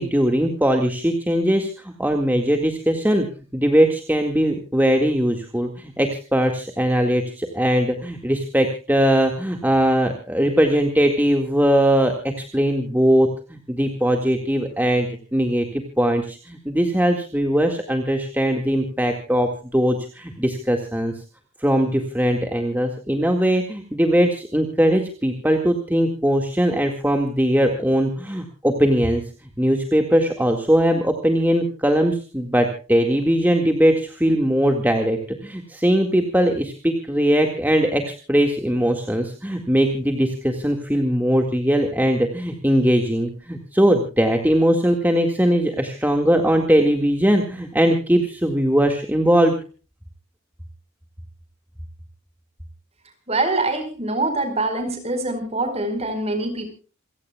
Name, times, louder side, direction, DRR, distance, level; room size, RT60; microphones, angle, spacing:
voice 1, 0.0-1.7 2.0-3.3 3.5-21.1 21.6-29.2 29.6-49.5, equal, 10° right, 3 dB, 1.9 m, -20 dB
voice 2, 53.3-56.7, right 2 dB, 30° right, 8 dB, 4.8 m, -24 dB
28.0 x 16.5 x 2.3 m, 0.36 s
head